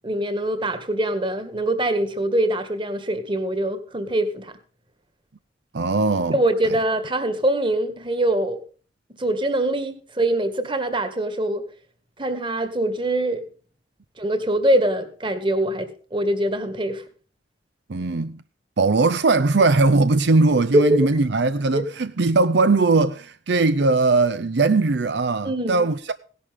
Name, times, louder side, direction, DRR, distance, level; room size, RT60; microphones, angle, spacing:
voice 1, 0.0-4.5 6.3-8.6 9.1-11.7 12.2-13.5 14.2-17.0 20.7-21.0 21.7-21.8 25.4-25.9, right 1 dB, 25° right, 1.8 m, -23 dB
voice 2, 5.7-6.4 17.9-18.4 18.8-26.1, right 3 dB, 65° right, 0.6 m, -19 dB
17.5 x 11.5 x 3.6 m
head